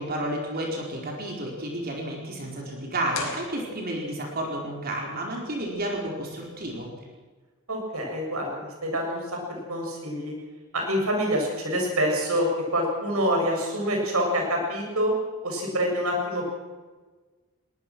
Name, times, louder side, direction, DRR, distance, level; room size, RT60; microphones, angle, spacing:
voice 1, 0.0-6.9, right 1 dB, 45° right, 0 dB, 4.6 m, -31 dB
sound 1, 3.1-4.3, left 4 dB, 70° left, 4.6 m, -37 dB
voice 2, 7.7-9.2 9.5-10.3 10.7-15.1 15.4-16.5, equal, 90° right, 1 dB, 7.8 m, -26 dB
21.5 x 19.0 x 6.3 m, 1.3 s
head